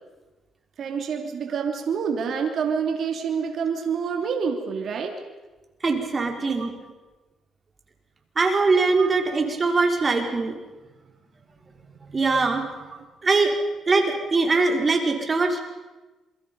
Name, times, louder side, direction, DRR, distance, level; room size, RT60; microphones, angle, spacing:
voice 1, 0.8-5.1 6.6-6.7 9.0-9.3 12.9-13.0, right 6 dB, 60° right, 3 dB, 3.0 m, -27 dB
voice 2, 5.8-6.7 8.4-10.5 12.1-12.6 13.2-13.5 13.9-15.6, right 3 dB, 30° right, 3 dB, 4.5 m, -22 dB
27.5 x 23.5 x 5.5 m, 1.2 s
cardioid pair, 90°, 0 cm